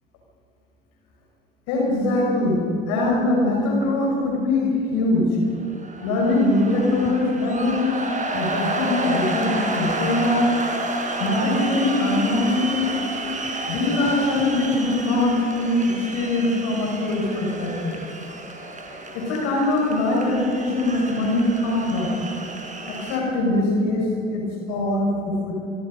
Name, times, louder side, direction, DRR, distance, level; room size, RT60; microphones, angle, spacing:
voice 1, 1.7-2.6 2.9-5.4 6.0-8.0 8.3-10.6 11.2-12.9 13.7-18.0 19.1-22.2 22.9-25.5, left 2 dB, 60° left, -1 dB, 5.8 m, -22 dB
sound 1, 5.6-23.2, right 2 dB, 25° right, 4.9 m, -31 dB
27.0 x 23.5 x 5.4 m, 2.7 s
figure-of-eight pair, 55°, 29 cm